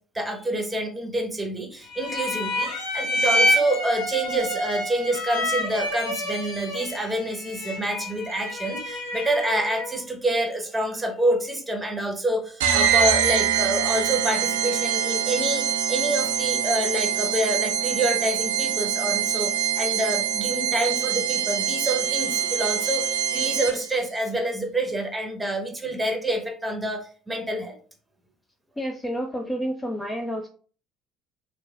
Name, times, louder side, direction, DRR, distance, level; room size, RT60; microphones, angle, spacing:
voice 1, 0.1-27.8, right 1 dB, 15° right, 3 dB, 0.8 m, -27 dB
sound 1, 1.9-10.0, left 1 dB, 85° left, 0.7 m, -28 dB
sound 2, 12.6-24.0, right 9 dB, 80° right, 0.3 m, -24 dB
voice 2, 28.8-30.5, equal, 15° left, 3 dB, 0.4 m, -29 dB
3.0 x 2.2 x 2.3 m, 0.40 s
hypercardioid pair, 60°, 0 cm